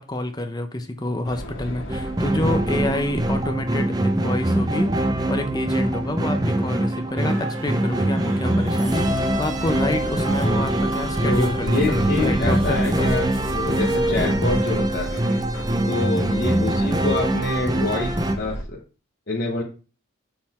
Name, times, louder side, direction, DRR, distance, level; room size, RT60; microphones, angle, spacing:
voice 1, 0.0-13.1, left 1 dB, 20° left, 6 dB, 0.7 m, -28 dB
sound 1, 1.2-18.6, equal, 70° left, 1.8 m, -35 dB
sound 2, 1.9-18.4, right 1 dB, 20° right, 0.6 m, -23 dB
sound 3, 7.2-14.3, right 4 dB, 65° right, 1.0 m, -39 dB
voice 2, 11.2-15.1 15.9-18.8 19.3-19.6, left 2 dB, 50° left, -3 dB, 1.1 m, -26 dB
6.9 x 4.0 x 4.2 m, 0.35 s
head